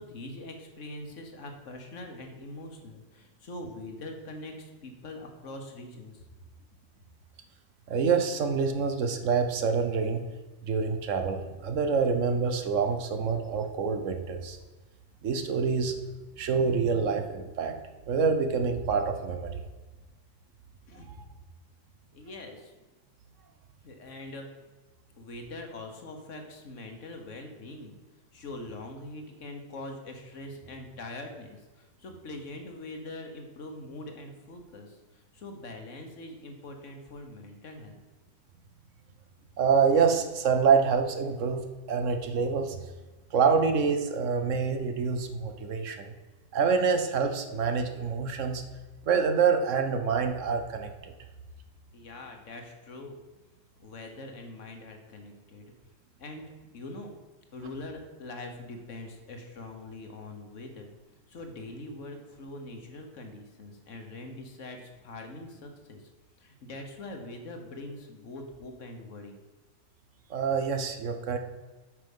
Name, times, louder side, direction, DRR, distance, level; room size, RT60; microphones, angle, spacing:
voice 1, 0.0-6.3 20.9-21.1 22.1-22.7 23.8-24.5 25.2-28.0 28.3-38.0 51.9-53.2 53.8-55.7 56.2-57.1 57.5-60.9 61.3-66.1 66.4-69.4, left 2 dB, 70° left, 4 dB, 1.6 m, -43 dB
voice 2, 7.9-10.2 10.6-14.6 15.2-15.9 16.4-17.7 18.1-19.6 39.6-41.6 41.9-42.9 43.3-46.1 46.5-48.6 49.1-51.1 70.3-71.4, right 5 dB, 75° right, 6 dB, 1.2 m, -26 dB
8.3 x 5.6 x 5.4 m, 1.2 s
omnidirectional pair, 1.3 m